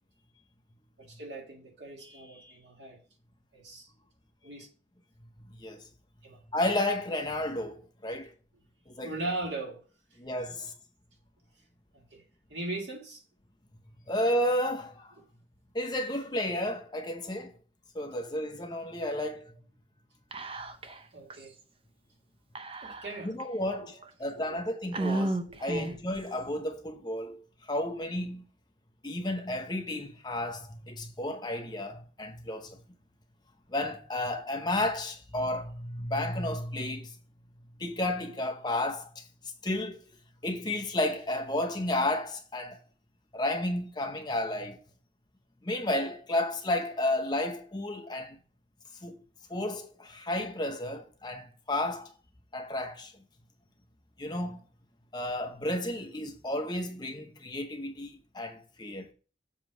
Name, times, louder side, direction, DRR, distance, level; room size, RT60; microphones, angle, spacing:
voice 1, 1.0-3.0 3.5-3.9 4.4-4.7 6.2-6.4 9.0-9.8 11.9-12.2 12.5-13.2 21.1-21.5 22.8-23.3 23.8-23.9 24.5-24.6 25.7-25.8, right 2 dB, 65° right, 1.9 m, -39 dB
voice 2, 6.5-8.3 8.9-9.1 10.2-10.7 14.1-15.1 15.7-17.5 17.9-19.5 23.2-28.4 29.0-32.8 33.7-37.1 37.8-39.2 39.6-40.0 40.4-42.8 43.3-44.8 45.6-48.4 49.0-49.2 49.5-52.1 52.5-53.1 54.2-54.6 55.1-59.1, left 1 dB, 20° left, 0.7 m, -32 dB
Whispering, 20.3-21.0 21.3-21.4 22.6-23.4 24.0-24.1 24.9-26.1, right 2 dB, 30° right, 0.6 m, -33 dB
7.3 x 3.0 x 5.9 m
head